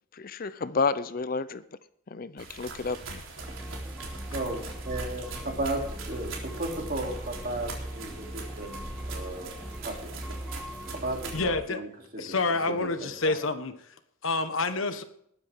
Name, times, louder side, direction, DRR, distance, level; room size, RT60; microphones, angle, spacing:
voice 1, 0.1-1.6 2.1-3.2, left 4 dB, 45° left, 15 dB, 0.5 m, -30 dB
sound 1, 2.4-11.4, right 3 dB, 80° right, 3.7 m, -42 dB
sound 2, 3.4-11.6, equal, ahead, 1.1 m, -39 dB
voice 2, 4.3-10.1 10.9-12.3 12.7-13.3, right 1 dB, 45° right, 1 dB, 3.1 m, -35 dB
voice 3, 11.3-11.8 12.2-13.9 14.2-15.0, left 3 dB, 80° left, 10 dB, 1.3 m, -28 dB
20.0 x 9.8 x 3.7 m, 0.70 s
head